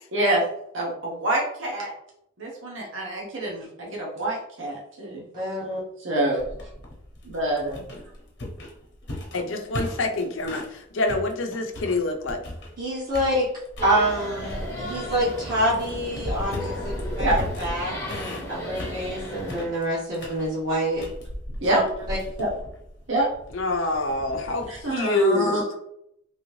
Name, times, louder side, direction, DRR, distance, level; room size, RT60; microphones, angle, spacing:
voice 1, 0.1-0.4 0.7-1.9 2.4-5.3 6.0-6.5 7.2-7.9 17.2-17.4 21.6-21.8 22.4-22.5 23.1-23.3 24.7-25.7, right 1 dB, 80° right, -3 dB, 0.9 m, -26 dB
voice 2, 5.3-5.8 12.8-13.5 13.8-21.1 21.7-21.8 22.1-22.2, right 1 dB, 45° right, -8 dB, 0.8 m, -27 dB
sound 1, 6.4-10.8 11.1-12.8 13.1-14.0 14.4-24.9, left 1 dB, 60° left, 0.9 m, -36 dB
voice 3, 9.3-10.6 10.9-12.4 23.5-25.6, left 2 dB, 90° left, 3 dB, 0.6 m, -26 dB
sound 2, 13.8-19.6, equal, 15° left, 0.8 m, -35 dB
3.2 x 2.7 x 3.1 m, 0.77 s
head